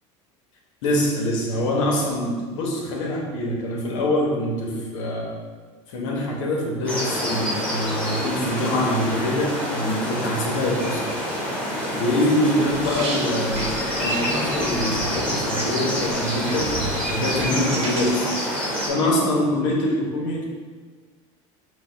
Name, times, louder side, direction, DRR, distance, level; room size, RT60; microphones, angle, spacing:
voice 1, 0.8-5.3 5.9-11.1 11.9-16.7 17.1-18.2 18.9-20.5, left 1 dB, 85° left, -1 dB, 1.1 m, -24 dB
sound 1, 6.9-18.9, equal, 5° left, 1.2 m, -27 dB
sound 2, 12.7-18.2, right 1 dB, 40° right, 1.0 m, -32 dB
5.2 x 2.3 x 4.4 m, 1.5 s
supercardioid pair, 120°, 16 cm